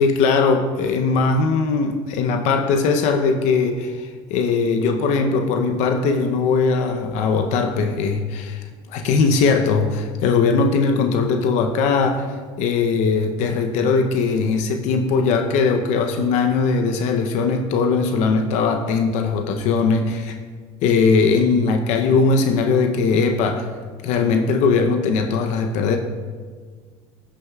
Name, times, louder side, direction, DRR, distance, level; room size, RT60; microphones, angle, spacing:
voice 1, 0.0-12.3 12.6-20.4 20.8-23.7 24.0-26.0, left 4 dB, 70° left, 5 dB, 0.7 m, -20 dB
13.0 x 6.3 x 2.4 m, 1.6 s
supercardioid pair, 110°, 13 cm